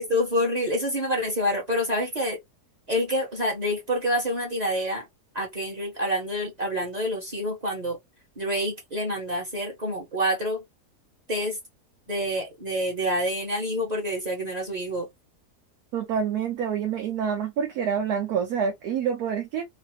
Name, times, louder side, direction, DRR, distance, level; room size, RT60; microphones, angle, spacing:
voice 1, 0.0-2.4 2.9-5.0 5.3-8.0 8.4-10.6 11.3-11.6 12.1-15.1, equal, 30° right, 1.0 m, -27 dB
voice 2, 15.9-19.7, right 7 dB, 70° right, 1.1 m, -27 dB
3.2 x 2.0 x 2.8 m
omnidirectional pair, 1.7 m